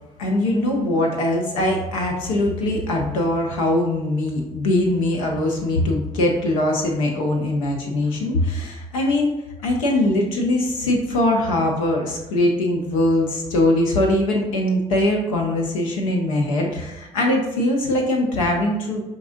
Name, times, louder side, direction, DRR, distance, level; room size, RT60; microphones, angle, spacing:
voice 1, 0.2-19.0, left 1 dB, 85° left, 0 dB, 0.5 m, -21 dB
5.9 x 2.5 x 2.6 m, 1.0 s
hypercardioid pair, 45°, 17 cm